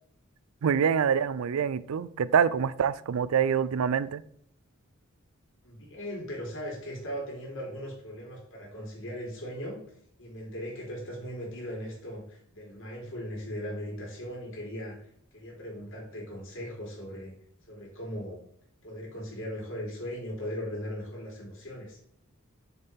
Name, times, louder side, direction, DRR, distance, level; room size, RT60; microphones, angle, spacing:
voice 1, 0.6-4.2, right 7 dB, 80° right, 17 dB, 0.4 m, -25 dB
voice 2, 5.6-9.8 10.2-14.9 15.3-17.3 17.7-18.4 18.8-22.0, equal, 65° left, -2 dB, 3.1 m, -38 dB
6.7 x 5.4 x 4.4 m, 0.66 s
head